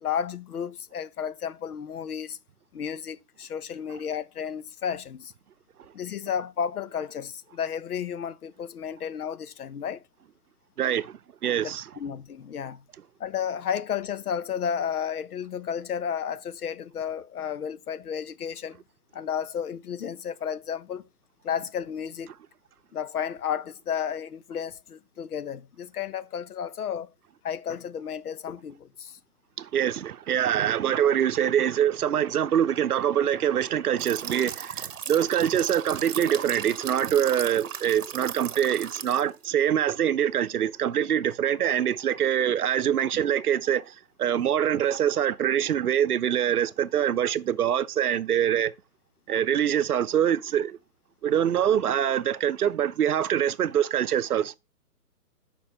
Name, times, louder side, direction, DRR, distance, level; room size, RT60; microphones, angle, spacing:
voice 1, 0.0-2.4 2.7-5.3 5.9-10.0 12.0-12.8 13.2-18.8 19.1-21.1 21.4-22.3 22.9-27.1 27.4-29.2, left 8 dB, 70° left, 0.8 m, -32 dB
voice 2, 10.8-11.9 29.6-48.7 49.3-50.8 51.2-54.6, right 9 dB, 70° right, 0.7 m, -24 dB
sound 1, 34.0-39.5, right 8 dB, 50° right, 1.1 m, -37 dB
6.9 x 5.3 x 4.3 m
hypercardioid pair, 150°, 47 cm